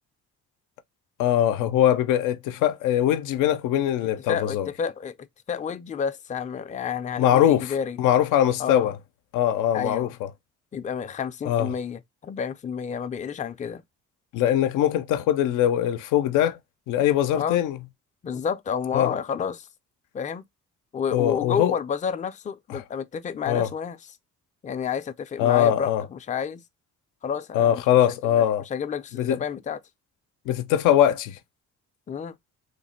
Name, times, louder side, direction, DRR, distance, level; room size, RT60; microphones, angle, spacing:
voice 1, 1.2-4.7 7.2-8.9 9.3-10.3 11.4-11.7 14.3-16.6 16.9-17.8 18.9-19.1 21.1-21.8 22.7-22.8 23.5-23.7 25.4-26.0 27.5-28.6 29.1-29.4 30.5-31.4, left 11 dB, 85° left, 0.5 m, -22 dB
voice 2, 4.3-5.2 5.5-8.0 8.6-9.0 9.7-10.1 10.7-13.8 17.3-17.6 18.2-19.7 20.1-20.4 20.9-24.0 24.6-26.6 27.2-27.8 28.3-28.4 28.7-29.8 32.1-32.4, left 7 dB, 25° left, 0.4 m, -30 dB
3.2 x 2.1 x 4.1 m
cardioid pair, 90°, 30 cm